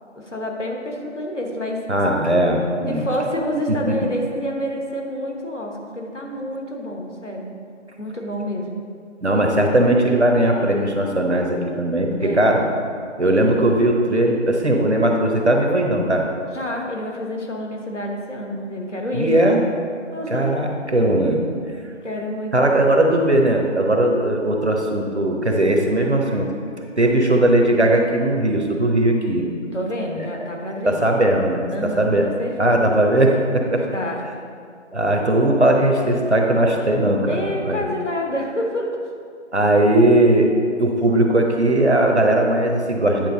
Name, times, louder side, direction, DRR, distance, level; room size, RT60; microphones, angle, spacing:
voice 1, 0.1-1.9 2.9-7.6 8.0-8.8 12.2-12.5 16.5-19.4 20.1-20.6 22.0-22.9 29.7-31.0 31.7-32.9 33.8-34.3 37.2-39.1, equal, 75° left, 1 dB, 1.3 m, -28 dB
voice 2, 1.9-3.0 3.9-4.0 9.2-12.6 13.2-16.3 19.1-19.6 20.3-21.4 22.5-26.5 27.0-29.5 30.8-32.3 32.6-33.9 34.9-37.8 39.5-40.5 40.8-43.3, right 1 dB, 65° right, 2 dB, 1.0 m, -18 dB
9.1 x 4.6 x 3.9 m, 2.2 s
figure-of-eight pair, 175°, 37 cm